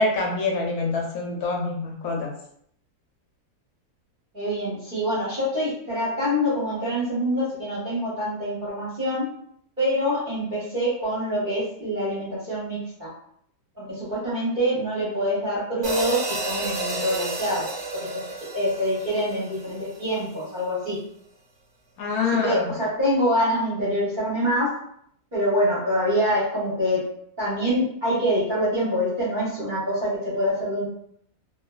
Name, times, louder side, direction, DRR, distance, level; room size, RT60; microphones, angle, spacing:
voice 1, 0.0-2.3 22.0-22.7, left 3 dB, 75° left, -1 dB, 1.0 m, -25 dB
voice 2, 4.3-9.3 9.8-13.1 13.8-17.7 17.9-18.1 18.5-21.0 22.1-24.7 25.3-27.0 27.4-30.9, equal, 45° right, -9 dB, 0.7 m, -25 dB
sound 1, 15.8-20.2, right 3 dB, 75° right, 0.3 m, -31 dB
2.5 x 2.3 x 2.2 m, 0.68 s
omnidirectional pair, 1.7 m